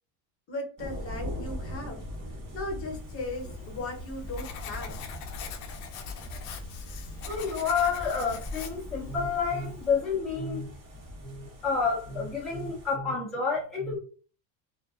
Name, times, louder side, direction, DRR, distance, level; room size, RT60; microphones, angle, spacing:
voice 1, 0.5-2.0 2.5-5.0, left 2 dB, 30° left, 0.9 m, -37 dB
sound 1, 0.8-12.9, left 1 dB, 45° right, 1.1 m, -41 dB
Writing, 3.2-10.0, left 7 dB, 65° left, 0.6 m, -44 dB
voice 2, 7.3-10.7 11.2-14.0, left 5 dB, ahead, 0.6 m, -29 dB
2.5 x 2.5 x 2.3 m
cardioid pair, 135°, 45 cm